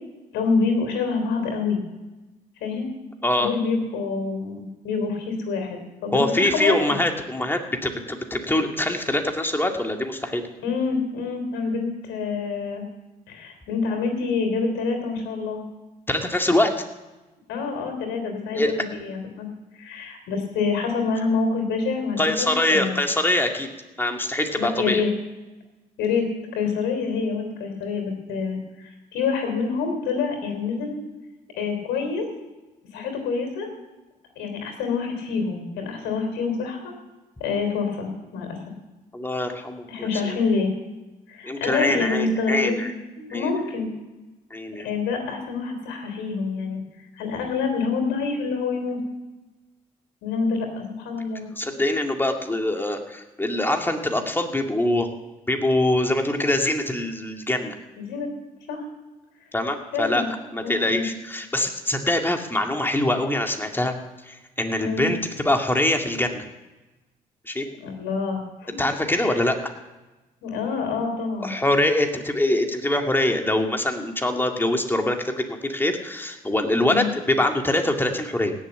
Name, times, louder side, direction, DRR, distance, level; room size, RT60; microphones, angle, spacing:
voice 1, 0.3-1.8 2.6-2.9 3.4-7.0 10.6-12.8 13.3-15.6 17.5-19.5 19.7-23.0 24.6-25.1 26.0-26.3 26.5-31.0 31.6-32.3 32.9-33.7 34.4-36.9 37.4-38.6 39.9-40.7 41.3-42.8 43.2-43.9 44.8-46.8 47.2-49.0 50.2-51.5 58.0-58.3 58.7-58.9 59.9-60.3 60.6-61.1 64.8-65.1 67.8-68.7 69.1-69.4 70.4-71.5 76.8-77.1, left 4 dB, 80° left, 5 dB, 3.5 m, -26 dB
voice 2, 6.1-10.4 16.1-16.7 18.6-18.7 22.2-23.7 24.0-25.0 39.1-40.4 41.4-42.9 43.3-43.5 44.5-44.9 51.6-55.1 55.5-57.7 59.5-60.2 60.5-63.9 64.2-66.4 67.5-67.7 68.8-69.6 71.4-78.5, left 1 dB, 10° left, 3 dB, 2.3 m, -24 dB
17.0 x 7.2 x 8.0 m, 1.1 s
supercardioid pair, 65°, 18 cm